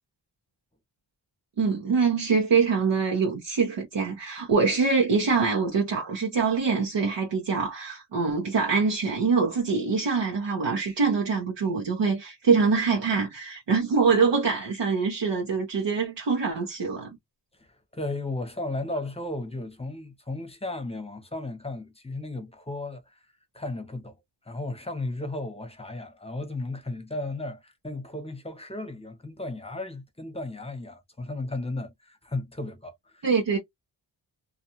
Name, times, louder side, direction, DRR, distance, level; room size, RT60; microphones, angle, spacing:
voice 1, 1.6-17.2 33.2-33.6, right 5 dB, 70° right, 0.9 m, -24 dB
voice 2, 17.6-23.3 23.5-24.2 24.4-33.3, left 2 dB, 15° left, 0.8 m, -35 dB
2.4 x 2.4 x 2.7 m
wide cardioid pair, 85°, 44 cm